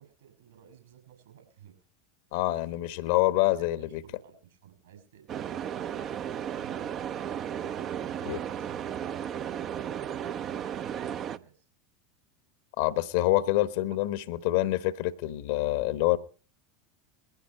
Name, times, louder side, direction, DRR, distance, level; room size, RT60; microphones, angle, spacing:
voice 1, 0.0-1.8 3.3-7.3 7.7-11.7 13.7-14.3, right 8 dB, 70° right, 7.2 m, -55 dB
voice 2, 2.3-4.0 8.3-8.4 12.8-16.2, left 16 dB, 55° left, 1.1 m, -26 dB
sound 1, 5.3-11.4, right 9 dB, 35° right, 0.8 m, -34 dB
21.0 x 16.0 x 3.1 m
figure-of-eight pair, 80°, 0 cm